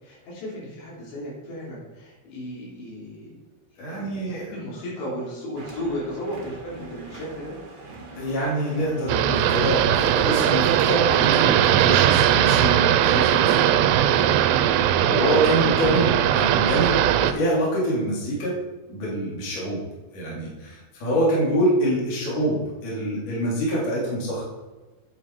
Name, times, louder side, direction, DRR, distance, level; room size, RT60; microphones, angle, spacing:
voice 1, 0.0-3.4 3.9-7.5 8.1-8.2 14.7-14.9, equal, 85° left, -6 dB, 5.8 m, -35 dB
voice 2, 3.8-4.7 8.2-13.7 14.1-14.4 15.1-18.5 18.9-19.8 20.1-24.4, right 1 dB, 50° left, -6 dB, 4.4 m, -25 dB
sound 1, 5.6-11.7, right 3 dB, 55° right, 1.3 m, -43 dB
sound 2, 9.1-17.3, right 11 dB, 85° right, 2.7 m, -19 dB
9.0 x 8.8 x 4.7 m, 1.2 s
omnidirectional pair, 4.9 m